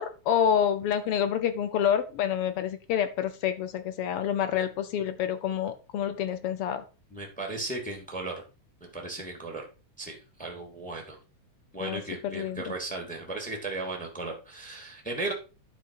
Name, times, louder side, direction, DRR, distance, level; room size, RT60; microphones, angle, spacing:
voice 1, 0.0-6.8 11.8-12.6, left 9 dB, 75° left, 10 dB, 1.3 m, -28 dB
voice 2, 7.1-8.4 8.9-9.6 10.0-11.2 11.7-15.3, right 2 dB, 5° left, 2 dB, 2.1 m, -36 dB
11.0 x 5.1 x 4.6 m, 0.32 s
omnidirectional pair, 3.4 m